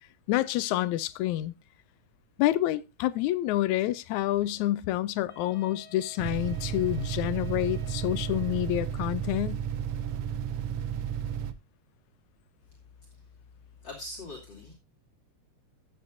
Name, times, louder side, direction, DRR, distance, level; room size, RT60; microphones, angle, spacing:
voice 1, 0.3-1.5 2.4-9.6, left 14 dB, 80° left, 2.0 m, -28 dB
Wind instrument woodwind instrument, 5.3-9.1, left 1 dB, 5° left, 3.1 m, -52 dB
sound 1, 6.2-11.5, right 9 dB, 70° right, 1.5 m, -33 dB
voice 2, 13.8-14.7, left 2 dB, 40° left, 3.4 m, -41 dB
15.0 x 8.5 x 2.6 m
omnidirectional pair, 3.3 m